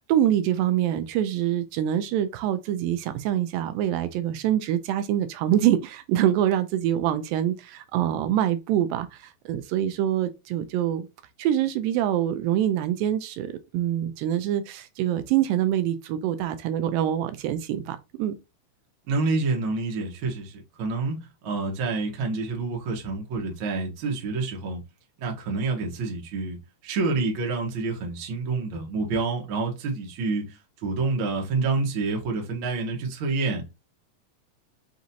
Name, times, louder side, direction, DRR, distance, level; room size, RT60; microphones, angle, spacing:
voice 1, 0.1-11.1 11.4-18.4, right 11 dB, 85° right, 2.2 m, -25 dB
voice 2, 19.1-24.8 25.2-26.6 26.8-33.7, right 3 dB, 60° right, 1.4 m, -28 dB
6.0 x 2.6 x 2.8 m
omnidirectional pair, 4.1 m